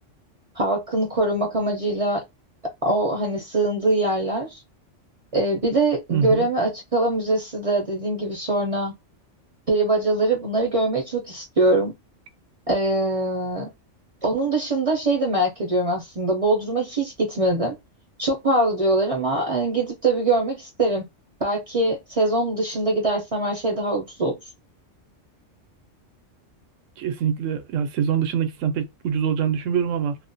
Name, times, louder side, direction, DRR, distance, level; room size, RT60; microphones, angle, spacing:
voice 1, 0.6-2.2 2.8-4.6 5.3-8.9 9.7-11.9 12.7-13.7 14.2-17.8 18.2-21.1 21.4-24.4, right 2 dB, 40° right, 0.5 m, -23 dB
voice 2, 6.1-6.5 27.0-30.2, right 8 dB, 80° right, 0.9 m, -24 dB
2.4 x 2.1 x 2.5 m
omnidirectional pair, 1.3 m